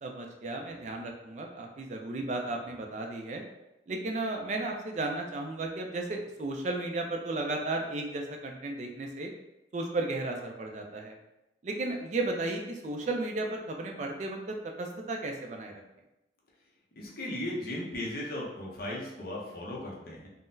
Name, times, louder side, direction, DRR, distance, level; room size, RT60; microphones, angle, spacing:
voice 1, 0.0-3.4 3.9-9.3 9.7-11.2 11.6-15.7, right 2 dB, 40° right, 2 dB, 0.3 m, -34 dB
voice 2, 17.0-20.3, left 1 dB, 55° left, -4 dB, 0.7 m, -36 dB
3.7 x 2.0 x 2.6 m, 0.92 s
head